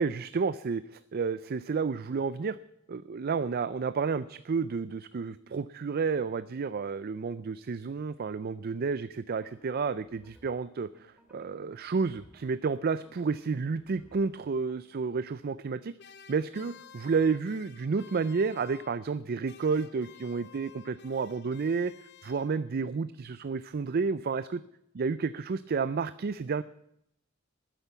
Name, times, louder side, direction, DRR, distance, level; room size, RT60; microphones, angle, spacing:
voice 1, 0.0-2.6 2.9-15.9 16.3-21.9 22.2-24.6 24.9-26.6, right 5 dB, 50° right, 15 dB, 0.4 m, -31 dB
sound 1, 9.3-14.8, right 1 dB, 5° right, 2.4 m, -61 dB
sound 2, 16.0-19.2 19.5-22.9, left 7 dB, 55° left, 0.7 m, -53 dB
13.0 x 10.0 x 8.2 m, 0.79 s
head